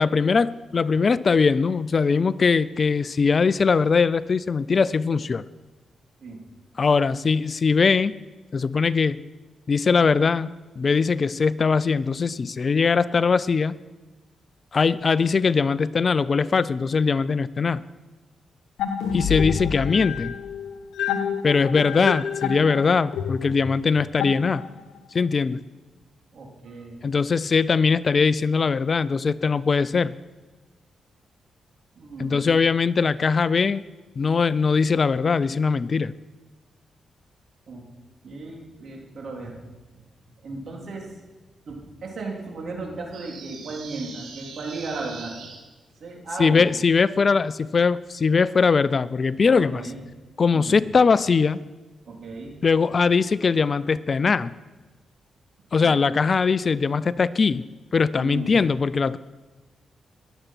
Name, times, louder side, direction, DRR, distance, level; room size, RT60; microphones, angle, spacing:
voice 1, 0.0-5.4 6.8-8.1 8.5-9.2 9.7-13.8 14.7-17.8 19.1-20.4 21.4-24.6 25.1-25.6 27.0-30.1 32.2-33.8 34.2-36.1 46.4-49.8 50.4-51.6 52.6-54.5 55.7-57.7 57.9-59.2, left 5 dB, 50° left, 18 dB, 0.4 m, -21 dB
sound 1, 18.8-25.0, left 7 dB, 85° left, 1.0 m, -29 dB
voice 2, 26.3-27.0 32.0-32.4 37.7-37.9 38.2-39.6 40.4-41.1 41.7-45.3 46.0-46.7 49.5-50.0 50.5-50.8 52.1-52.6 55.8-55.9 58.2-58.5, right 3 dB, 65° right, 0 dB, 3.5 m, -35 dB
sound 2, 43.1-45.6, right 5 dB, 85° right, 2.6 m, -42 dB
20.5 x 8.0 x 5.9 m, 1.2 s
cardioid pair, 60°, 0 cm